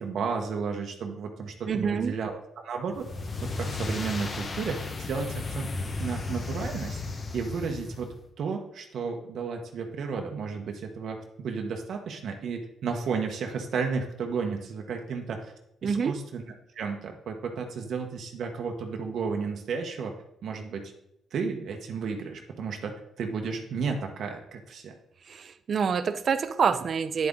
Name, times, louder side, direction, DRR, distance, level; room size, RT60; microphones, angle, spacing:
voice 1, 0.0-3.1 3.4-5.7 6.0-7.0 7.3-15.5 15.8-16.4 16.7-20.1 20.4-20.9 21.3-24.9, right 5 dB, 65° right, 3 dB, 1.1 m, -33 dB
voice 2, 1.7-2.1 15.8-16.1 25.3-27.3, right 6 dB, 50° right, 12 dB, 0.6 m, -27 dB
sound 1, 2.9-8.2, left 3 dB, 40° left, 1.2 m, -34 dB
9.4 x 7.9 x 3.7 m, 0.80 s
cardioid pair, 90°, 0 cm